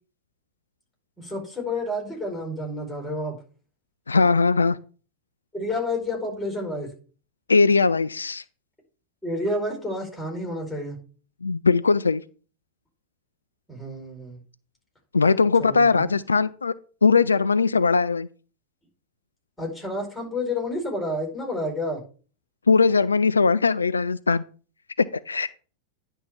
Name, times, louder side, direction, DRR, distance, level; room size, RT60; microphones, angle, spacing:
voice 1, 1.2-3.4 5.5-6.9 9.2-11.0 13.7-14.4 15.6-16.1 19.6-22.0, left 1 dB, 5° left, 0 dB, 4.5 m, -30 dB
voice 2, 4.1-4.8 7.5-8.4 11.4-12.2 15.1-16.7 17.0-18.3 22.7-24.4 25.0-25.5, left 4 dB, 75° left, 15 dB, 0.3 m, -20 dB
10.0 x 3.6 x 7.0 m, 0.38 s
figure-of-eight pair, 90°, 0 cm